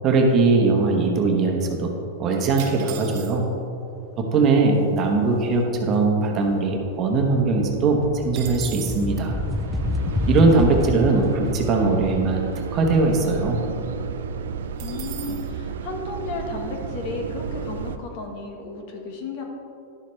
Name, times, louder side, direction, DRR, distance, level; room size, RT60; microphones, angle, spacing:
voice 1, 0.0-1.9 2.2-3.4 4.2-8.0 8.2-9.3 10.3-13.6, right 3 dB, 30° right, 1 dB, 1.1 m, -20 dB
sound 1, 2.6-3.7 4.5-4.6 4.7-5.1 5.5-7.0 7.3-7.4 7.7-9.1 14.8-15.5, right 11 dB, 45° right, 0.9 m, -39 dB
sound 2, 5.9-6.1 6.5-15.3, left 2 dB, 5° left, 0.3 m, -30 dB
sound 3, 9.0-18.0, right 6 dB, 90° right, 0.4 m, -32 dB
voice 2, 10.5-10.8 11.1-11.3 14.8-19.4, left 3 dB, 50° left, 2 dB, 1.3 m, -34 dB
11.0 x 7.1 x 3.2 m, 2.6 s
supercardioid pair, 150°, 0 cm